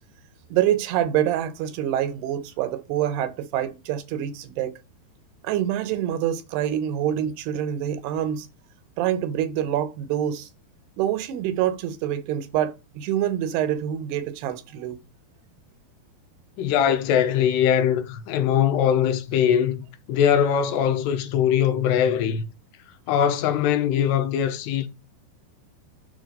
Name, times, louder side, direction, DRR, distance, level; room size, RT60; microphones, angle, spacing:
voice 1, 0.5-4.8 5.4-8.5 9.0-10.5 11.0-15.0, right 11 dB, 80° right, 2.8 m, -26 dB
voice 2, 16.6-22.4 23.1-24.9, left 9 dB, 85° left, 3.0 m, -21 dB
10.0 x 3.5 x 5.2 m
omnidirectional pair, 4.8 m